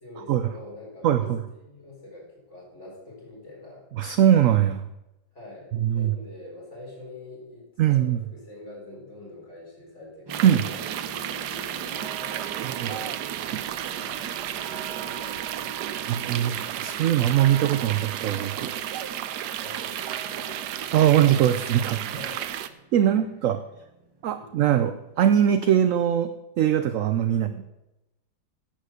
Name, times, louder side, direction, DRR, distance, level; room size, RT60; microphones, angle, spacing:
voice 1, 0.0-1.3 1.6-3.9 5.3-13.5 14.0-16.2 19.6-21.3 22.1-22.7 23.0-23.3 24.3-24.5 27.3-27.6, left 1 dB, 45° left, -4 dB, 4.9 m, -45 dB
voice 2, 1.0-1.4 4.0-4.9 5.7-6.1 7.8-8.2 10.4-10.6 12.6-12.9 13.5-13.6 16.1-18.7 20.9-22.0 22.9-23.6 24.2-26.3 26.6-27.5, right 10 dB, 70° right, 10 dB, 0.8 m, -21 dB
sound 1, 10.3-25.7, right 3 dB, 25° right, 0.6 m, -49 dB
sound 2, 10.3-22.7, right 11 dB, 90° right, 1.2 m, -32 dB
10.0 x 7.5 x 6.5 m, 0.95 s
omnidirectional pair, 1.7 m